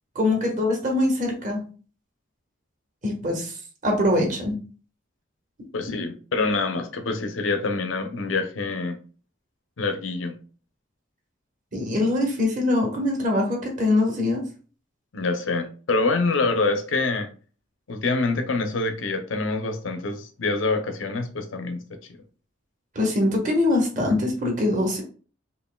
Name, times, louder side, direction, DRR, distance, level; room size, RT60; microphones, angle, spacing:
voice 1, 0.1-1.6 3.0-3.5 3.8-4.6 11.7-14.4 22.9-25.0, left 2 dB, 40° right, 1.2 m, -23 dB
voice 2, 5.7-9.0 9.8-10.4 15.1-17.3 17.9-22.0, left 3 dB, 85° left, 0.7 m, -26 dB
5.3 x 2.5 x 2.2 m
head